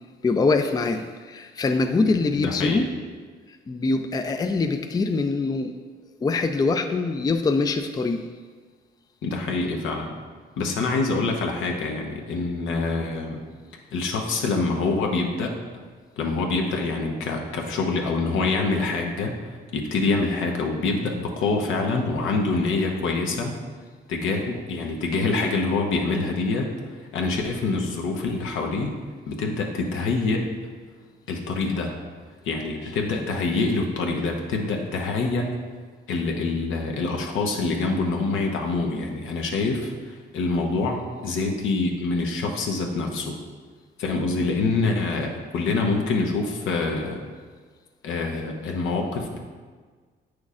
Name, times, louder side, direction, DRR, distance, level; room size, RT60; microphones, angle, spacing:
voice 1, 0.2-2.9 3.7-5.7 6.2-8.3, left 3 dB, 20° left, 7 dB, 0.4 m, -23 dB
voice 2, 2.3-2.9 9.2-10.1 10.6-13.4 13.9-15.6 16.2-23.5 24.1-26.7 27.1-29.0 29.3-30.5 31.3-32.0 32.4-35.5 36.1-43.3 44.0-47.2 48.0-49.4, left 3 dB, 85° left, 1 dB, 1.0 m, -25 dB
8.3 x 6.2 x 2.5 m, 1.5 s
cardioid pair, 90°, 20 cm